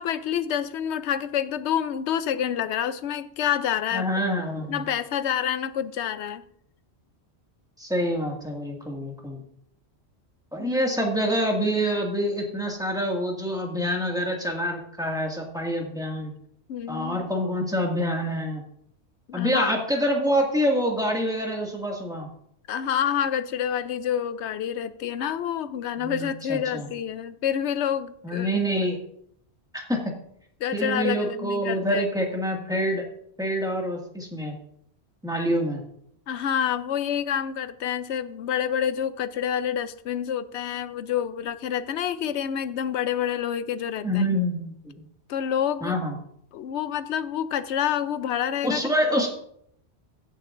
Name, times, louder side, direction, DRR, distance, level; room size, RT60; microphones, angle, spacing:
voice 1, 0.0-4.1 4.7-6.4 10.6-10.8 16.7-17.3 19.3-19.7 22.7-28.6 30.6-32.1 36.3-44.2 45.3-46.0 46.5-48.8, left 9 dB, 85° left, 13 dB, 0.9 m, -28 dB
voice 2, 3.9-4.8 7.8-9.4 10.5-16.3 16.9-18.6 19.3-22.3 26.0-26.9 28.2-29.0 29.7-30.0 30.7-33.0 33.4-34.6 35.2-35.8 44.0-44.9 45.8-46.2 48.6-49.3, equal, 5° right, 0 dB, 2.0 m, -26 dB
16.0 x 9.0 x 2.6 m, 0.68 s
omnidirectional pair, 1.1 m